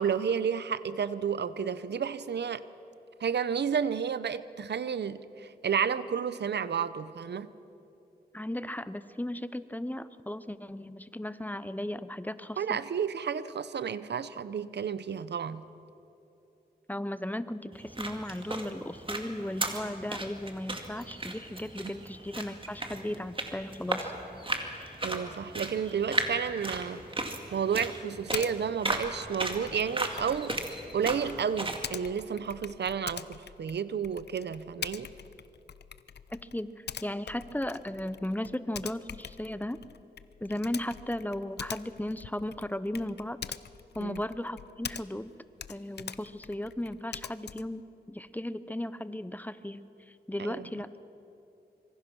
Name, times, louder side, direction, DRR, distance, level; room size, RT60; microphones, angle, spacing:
voice 1, 0.0-2.6 3.2-7.5 12.6-15.6 21.8-21.9 25.0-30.6 30.9-35.1 44.0-44.2 50.4-50.7, right 7 dB, 90° right, 0.7 m, -31 dB
voice 2, 8.3-12.8 16.9-24.1 36.3-39.8 40.4-43.4 43.9-45.3 45.7-50.9, left 1 dB, 10° left, 0.8 m, -36 dB
sound 1, 17.7-31.8, right 2 dB, 30° right, 2.3 m, -36 dB
Typing, 28.3-28.5 28.9-45.3 45.6-47.8, left 7 dB, 80° left, 0.6 m, -44 dB
25.5 x 23.5 x 6.1 m
wide cardioid pair, 75°, 17 cm